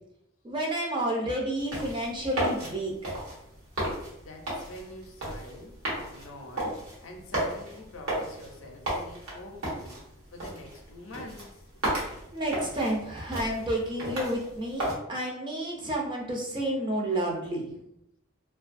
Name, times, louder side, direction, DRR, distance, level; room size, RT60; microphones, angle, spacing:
voice 1, 0.4-3.2 12.3-17.7, right 1 dB, 20° right, -1 dB, 0.4 m, -30 dB
sound 1, 1.6-15.0, right 1 dB, 80° right, 1.1 m, -35 dB
voice 2, 4.2-5.8 6.1-6.7 7.0-10.0 10.3-11.5, left 1 dB, 70° left, 2 dB, 0.5 m, -46 dB
2.5 x 2.3 x 2.5 m, 0.81 s
head